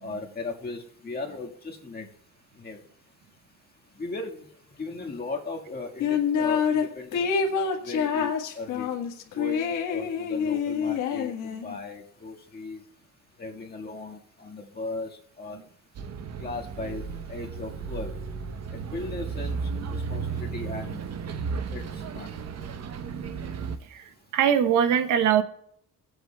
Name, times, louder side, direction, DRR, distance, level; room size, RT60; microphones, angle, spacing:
voice 1, 0.0-2.1 2.6-2.8 4.0-4.5 4.8-7.6 7.8-8.9 9.3-12.8 13.4-15.1 15.4-15.6 16.4-17.0 17.3-18.1 18.9-21.1 21.7-21.8 22.1-22.3, left 3 dB, 30° left, 0 dB, 1.7 m, -37 dB
sound 1, 6.0-6.8 7.1-11.8, left 6 dB, 90° left, 1.4 m, -26 dB
Bus, 15.9-23.8, right 5 dB, 55° right, 0.9 m, -34 dB
voice 2, 23.9-25.4, right 8 dB, 90° right, 10 dB, 1.0 m, -22 dB
22.5 x 8.0 x 2.3 m, 0.70 s
cardioid pair, 90°, 30 cm